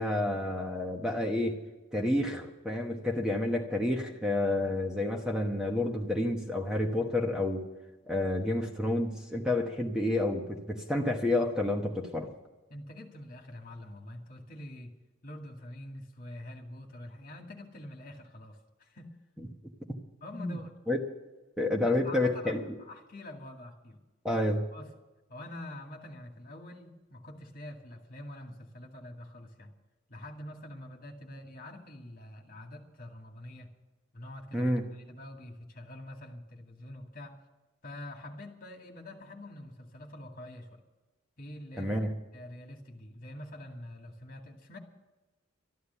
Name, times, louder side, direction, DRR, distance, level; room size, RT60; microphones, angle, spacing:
voice 1, 0.0-1.6 1.9-7.7 8.1-12.3 19.4-19.5 20.4-20.6 20.9-21.0 21.6-22.8 24.2-24.7 34.5-34.8 41.8-42.1, left 1 dB, 5° right, 1 dB, 1.1 m, -29 dB
voice 2, 12.7-14.9 15.2-19.1 20.2-20.7 22.0-24.0 24.7-24.9 25.3-29.7 30.1-33.7 34.1-37.3 37.8-40.8 41.4-41.9 42.3-44.8, left 1 dB, 45° left, 2 dB, 2.2 m, -46 dB
13.0 x 12.0 x 7.0 m, 1.1 s
head